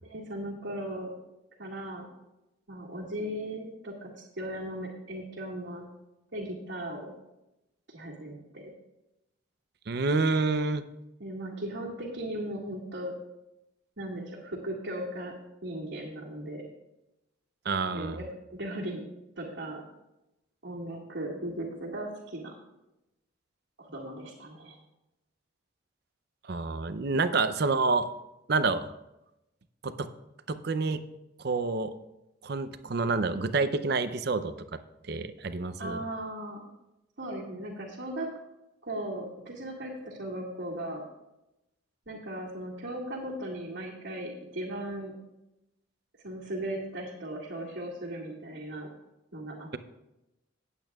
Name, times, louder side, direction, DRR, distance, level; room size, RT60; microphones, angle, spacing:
voice 1, 0.0-1.1 1.6-2.1 2.7-5.8 6.3-7.1 7.9-8.7 11.2-13.1 14.0-15.4 15.6-16.6 17.9-18.3 18.5-19.0 19.4-19.8 20.6-22.5 23.8-24.8 35.8-36.6 37.2-38.3 38.8-41.0 42.1-45.1 46.2-48.9 49.3-49.8, right 1 dB, 70° right, -6 dB, 1.9 m, -37 dB
voice 2, 9.9-10.8 17.6-18.2 26.5-28.1 28.5-28.9 29.8-30.1 30.5-31.0 31.4-31.9 32.4-34.8 35.0-36.0, right 3 dB, 55° right, 12 dB, 0.6 m, -28 dB
17.5 x 8.4 x 2.3 m, 0.93 s
head